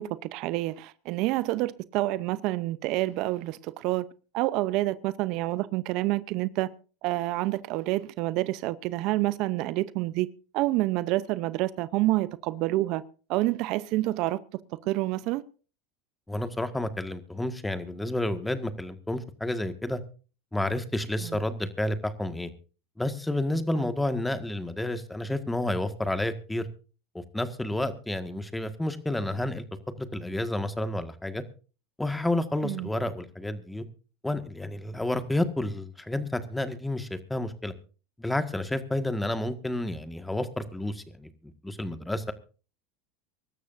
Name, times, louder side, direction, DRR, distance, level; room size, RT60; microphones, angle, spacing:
voice 1, 0.0-4.0 4.3-6.7 7.0-10.3 10.5-13.0 13.3-14.4 14.9-15.4 21.2-21.4 23.7-23.9 32.6-32.9, right 18 dB, 60° right, 0.7 m, -28 dB
voice 2, 16.3-20.0 20.5-22.5 23.0-26.7 27.1-29.6 30.0-31.4 32.0-33.8 34.2-37.7 38.2-42.3, left 1 dB, 5° left, 1.7 m, -30 dB
24.5 x 13.0 x 2.6 m
hypercardioid pair, 95°, 0 cm